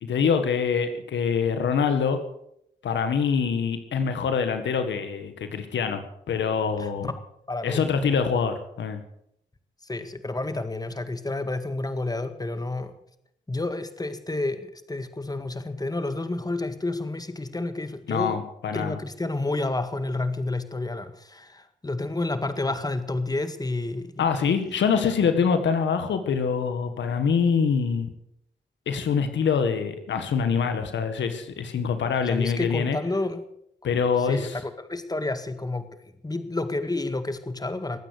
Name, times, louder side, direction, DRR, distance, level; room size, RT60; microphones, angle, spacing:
voice 1, 0.0-2.2 2.8-7.1 7.6-9.0 18.1-18.9 24.2-28.1 28.9-33.0 33.8-34.6, left 6 dB, 85° left, 8 dB, 1.7 m, -25 dB
voice 2, 6.8-7.1 7.5-8.0 9.8-12.9 13.5-18.4 18.7-24.5 24.9-25.1 32.3-33.4 34.2-38.0, left 2 dB, 20° left, 10 dB, 1.8 m, -30 dB
21.0 x 9.0 x 6.6 m, 0.74 s
cardioid pair, 50°, 19 cm